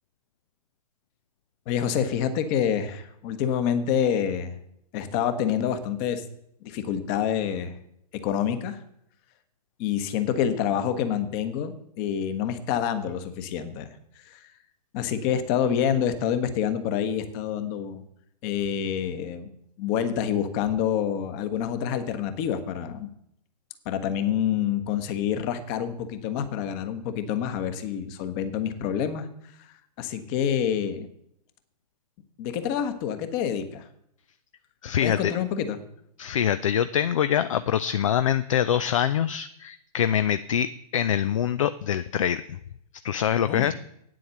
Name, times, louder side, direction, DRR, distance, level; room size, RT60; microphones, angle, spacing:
voice 1, 1.7-4.5 4.9-6.2 6.6-7.7 8.1-8.8 9.8-13.9 14.3-14.4 14.9-18.0 18.4-19.5 19.8-23.1 23.8-29.3 30.0-31.1 32.4-33.9 35.0-35.8 43.5-43.7, left 9 dB, 30° left, 10 dB, 1.2 m, -27 dB
voice 2, 34.8-35.3 36.2-42.5 43.0-43.7, left 9 dB, 50° left, 13 dB, 0.5 m, -24 dB
9.2 x 7.7 x 6.9 m, 0.74 s
figure-of-eight pair, 110°, 21 cm